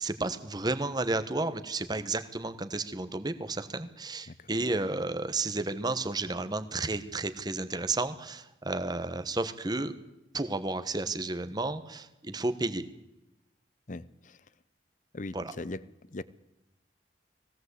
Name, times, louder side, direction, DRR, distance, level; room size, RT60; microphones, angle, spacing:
voice 1, 0.0-9.9 10.3-12.8 15.3-15.5, right 2 dB, 20° right, 1.2 m, -32 dB
voice 2, 13.9-14.4 15.1-15.8 16.1-16.2, left 2 dB, 45° left, 0.7 m, -39 dB
20.0 x 16.5 x 8.2 m
head